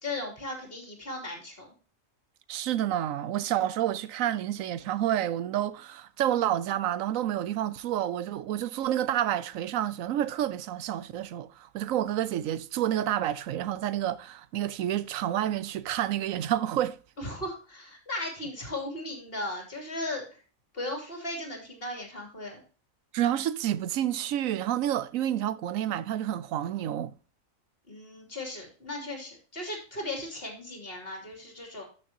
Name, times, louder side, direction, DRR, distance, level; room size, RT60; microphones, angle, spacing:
voice 1, 0.0-1.7 17.2-20.4 20.7-22.6 27.9-31.8, left 2 dB, 45° left, 3.3 m, -37 dB
voice 2, 2.5-17.0 23.1-27.1, right 11 dB, 85° right, 1.0 m, -29 dB
12.5 x 6.5 x 2.8 m
omnidirectional pair, 1.4 m